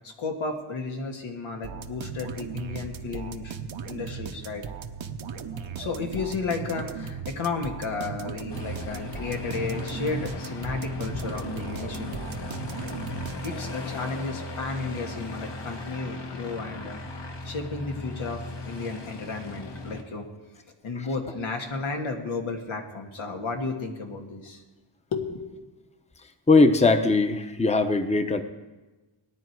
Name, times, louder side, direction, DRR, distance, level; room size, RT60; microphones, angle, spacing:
voice 1, 0.0-3.5 3.9-4.6 5.8-12.2 13.4-17.0 17.4-20.3 20.8-24.6 25.1-25.5, left 4 dB, 85° left, 2 dB, 2.0 m, -33 dB
sound 1, 1.6-13.9, right 6 dB, 75° right, 1.0 m, -37 dB
Aircraft, 8.5-20.0, left 3 dB, 60° left, 1.7 m, -37 dB
voice 2, 26.5-28.4, left 3 dB, 15° left, 8 dB, 0.9 m, -20 dB
19.0 x 10.0 x 4.7 m, 1.2 s
wide cardioid pair, 95°, 46 cm